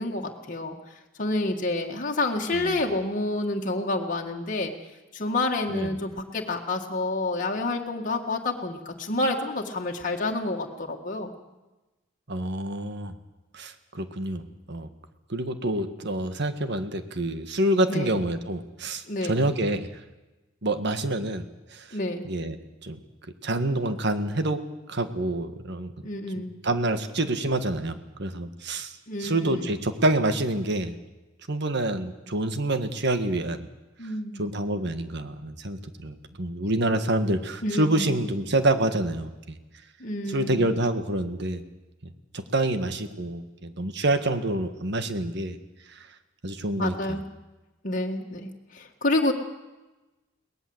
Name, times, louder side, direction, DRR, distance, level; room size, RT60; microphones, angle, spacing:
voice 1, 0.0-4.7 5.1-11.3 17.9-18.1 19.1-19.5 21.9-22.3 26.0-26.6 29.1-29.7 34.0-34.5 37.6-38.1 40.0-40.6 46.8-47.3 47.8-49.3, left 2 dB, 40° left, 0 dB, 1.9 m, -29 dB
voice 2, 12.3-13.1 13.5-14.9 15.3-19.9 20.6-21.4 21.7-22.0 22.2-22.5 22.8-23.0 23.4-24.6 24.9-25.9 26.4-28.9 29.2-30.9 31.5-33.6 34.4-39.5 40.3-41.6 42.0-45.6 45.9-46.1 46.4-47.2, right 1 dB, 55° right, 9 dB, 1.7 m, -27 dB
22.5 x 18.5 x 8.0 m, 1.1 s
head